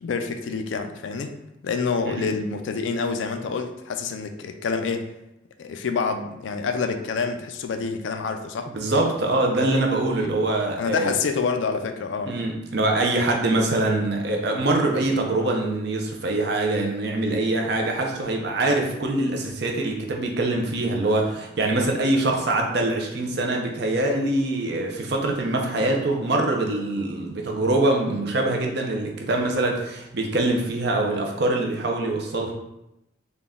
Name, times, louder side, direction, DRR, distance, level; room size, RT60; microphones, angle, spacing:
voice 1, 0.0-1.3 1.6-5.1 5.6-8.7 10.1-10.3 10.8-12.4, left 5 dB, 70° left, 6 dB, 0.3 m, -27 dB
voice 2, 8.7-11.1 12.3-32.5, right 2 dB, 55° right, 1 dB, 0.6 m, -24 dB
3.8 x 2.2 x 3.5 m, 0.87 s
head